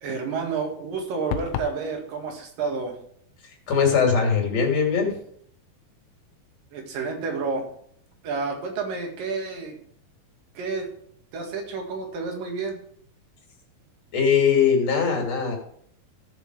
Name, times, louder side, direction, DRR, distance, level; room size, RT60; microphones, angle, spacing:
voice 1, 0.0-3.0 6.7-7.7 8.2-9.8 10.6-10.9 11.3-12.8, right 4 dB, 65° right, 3 dB, 3.6 m, -30 dB
sound 1, 1.3-1.8, left 10 dB, 75° left, 1.8 m, -29 dB
voice 2, 3.7-5.2 14.1-15.6, left 6 dB, 45° left, 1 dB, 3.9 m, -21 dB
15.0 x 6.8 x 4.9 m, 0.64 s
omnidirectional pair, 4.2 m